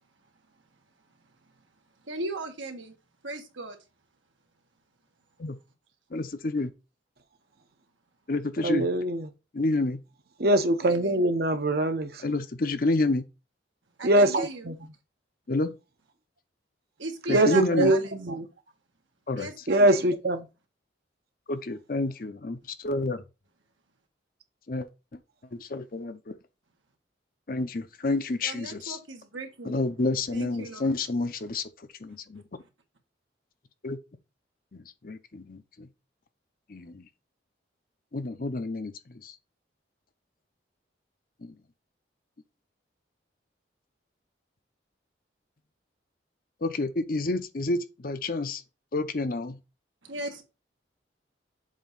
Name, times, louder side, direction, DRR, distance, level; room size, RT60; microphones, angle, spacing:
voice 1, 2.0-2.9 3.2-3.8 10.8-11.2 14.0-14.7 17.0-18.1 19.3-20.2 28.4-29.8 30.3-30.9 32.6-32.7 50.0-50.4, right 3 dB, 85° right, 1.6 m, -37 dB
voice 2, 6.1-6.7 8.3-8.9 9.5-10.0 12.2-13.2 15.5-15.7 17.3-17.9 19.3-19.5 21.5-22.6 22.8-23.2 24.7-24.9 25.6-26.4 27.5-29.0 29.7-31.6 32.0-32.4 33.8-34.0 35.0-35.9 36.7-37.0 38.1-38.9 39.2-39.3 41.4-41.5 46.6-48.6 48.9-49.6, left 2 dB, 50° left, 0.7 m, -29 dB
voice 3, 8.6-9.3 10.4-12.2 14.0-14.7 17.3-18.4 19.7-20.5, right 1 dB, 55° right, 0.8 m, -23 dB
7.4 x 2.8 x 5.4 m
head